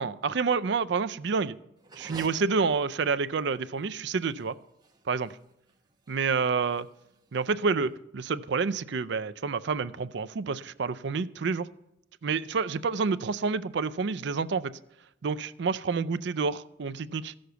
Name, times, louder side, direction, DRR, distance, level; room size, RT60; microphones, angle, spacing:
voice 1, 0.0-1.6 2.0-4.5 5.1-5.4 6.1-6.9 7.3-11.7 12.2-14.7 15.2-17.3, right 5 dB, 60° right, 14 dB, 0.5 m, -28 dB
sound 1, 1.8-7.9, right 2 dB, 20° right, 1.1 m, -51 dB
14.5 x 6.4 x 6.9 m, 0.84 s
head